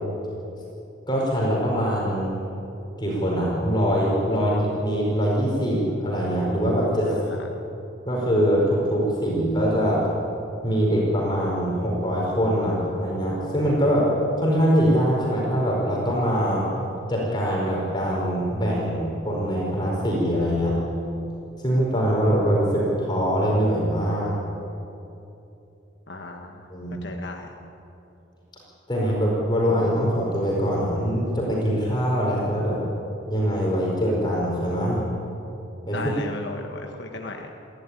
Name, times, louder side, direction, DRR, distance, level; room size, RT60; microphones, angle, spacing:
voice 1, 1.1-2.3 3.0-7.1 8.0-10.0 10.6-14.1 14.4-16.7 17.1-20.7 21.6-24.3 26.7-27.0 28.9-32.8 33.3-35.0 35.9-36.1, equal, 20° left, -4 dB, 4.7 m, -23 dB
voice 2, 7.0-7.4 26.1-26.6 27.0-27.5 35.9-37.5, left 2 dB, 55° left, 2 dB, 1.5 m, -35 dB
30.0 x 12.0 x 9.8 m, 2.8 s
head